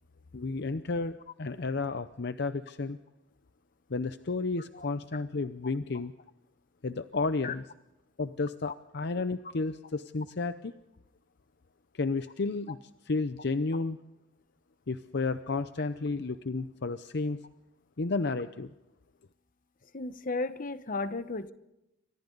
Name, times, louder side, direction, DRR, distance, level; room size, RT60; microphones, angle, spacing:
voice 1, 0.3-3.0 3.9-6.1 6.8-7.6 8.2-10.7 11.9-12.8 13.0-14.0 14.9-17.4 18.0-18.7, left 3 dB, 60° left, 11 dB, 0.7 m, -32 dB
voice 2, 19.9-21.5, left 3 dB, 45° left, 12 dB, 1.1 m, -34 dB
28.5 x 25.0 x 4.0 m, 0.94 s
head